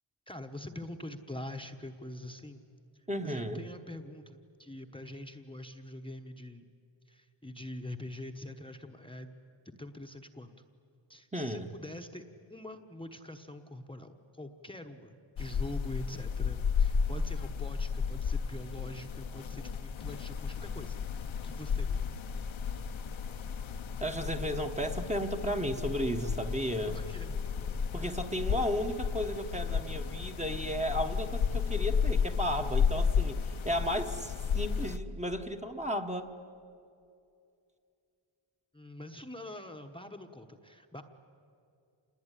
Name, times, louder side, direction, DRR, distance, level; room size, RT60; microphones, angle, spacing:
voice 1, 0.3-2.6 3.2-6.6 7.1-9.3 9.6-10.5 11.1-12.2 12.5-22.0 26.8-27.4 38.7-41.0, left 1 dB, 10° left, 5 dB, 1.1 m, -44 dB
voice 2, 3.1-3.6 11.3-11.7 24.0-27.0 27.9-36.3, equal, 15° right, 5 dB, 1.2 m, -34 dB
sound 1, 15.4-35.0, left 6 dB, 70° left, 1.1 m, -33 dB
27.5 x 20.5 x 10.0 m, 2.5 s
wide cardioid pair, 140°, 49 cm